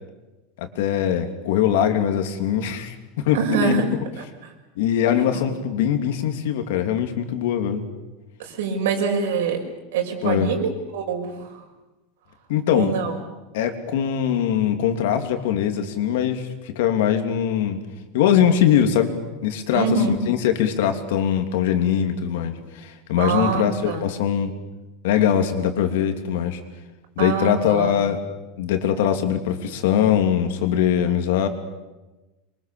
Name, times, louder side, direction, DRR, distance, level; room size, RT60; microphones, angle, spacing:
voice 1, 0.6-3.7 4.8-7.8 10.2-10.5 12.5-12.9 13.5-16.5 16.7-17.8 18.1-19.1 19.4-24.5 25.0-26.6 27.2-28.2 28.6-31.5, left 9 dB, 70° left, 6 dB, 3.0 m, -22 dB
voice 2, 3.3-3.9 4.2-4.5 5.3-5.4 8.4-9.6 9.9-11.7 12.7-13.1 19.7-20.2 23.2-24.1 27.2-28.0, right 5 dB, 80° right, 4 dB, 5.9 m, -25 dB
27.0 x 24.0 x 7.1 m, 1.1 s
supercardioid pair, 175°, 0 cm